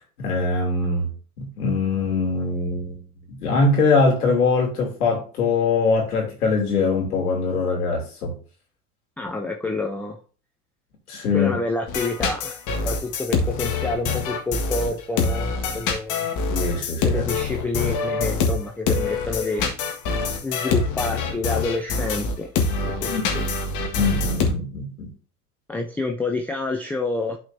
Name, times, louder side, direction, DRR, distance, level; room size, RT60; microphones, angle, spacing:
voice 1, 0.2-1.1 1.4-3.0 3.4-8.3 11.1-11.5 16.5-17.2 23.1-23.3 23.9-25.1, left 3 dB, 75° left, 1 dB, 2.9 m, -22 dB
voice 2, 9.2-10.2 11.3-16.3 17.0-19.7 20.4-22.5 22.8-23.5 25.7-27.4, left 2 dB, 5° left, 2 dB, 0.3 m, -28 dB
sound 1, 11.9-24.5, left 4 dB, 40° left, 1.7 m, -25 dB
11.5 x 4.3 x 2.7 m, 0.39 s
figure-of-eight pair, 80°, 45 cm